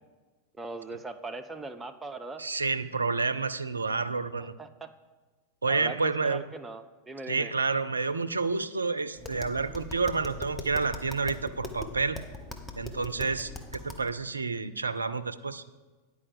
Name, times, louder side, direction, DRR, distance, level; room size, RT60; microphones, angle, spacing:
voice 1, 0.6-2.4 4.4-4.9 5.7-7.5, right 3 dB, 10° right, 6 dB, 0.6 m, -40 dB
voice 2, 2.4-4.5 5.6-6.5 7.3-12.2 12.8-13.5 13.8-15.6, right 4 dB, 75° right, 13 dB, 0.4 m, -29 dB
Tap, 9.1-14.1, left 2 dB, 15° left, 0.9 m, -41 dB
9.9 x 4.8 x 6.8 m, 1.3 s
figure-of-eight pair, 90°, 0 cm